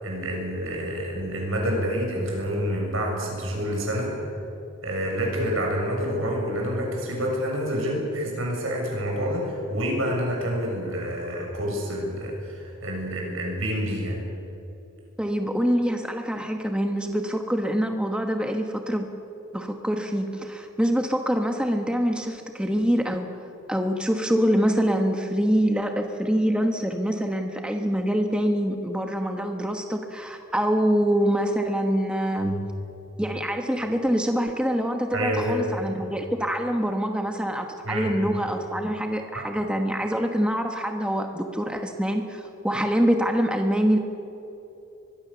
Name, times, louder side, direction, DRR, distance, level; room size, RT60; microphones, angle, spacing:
voice 1, 0.0-4.2 4.8-14.2 32.4-32.7 35.1-35.7 37.8-38.2 39.3-39.5, equal, 70° right, 0 dB, 6.8 m, -28 dB
voice 2, 15.2-19.1 19.5-23.3 23.7-32.6 33.2-44.0, equal, 5° right, 4 dB, 1.2 m, -25 dB
24.0 x 21.5 x 7.0 m, 2.9 s
head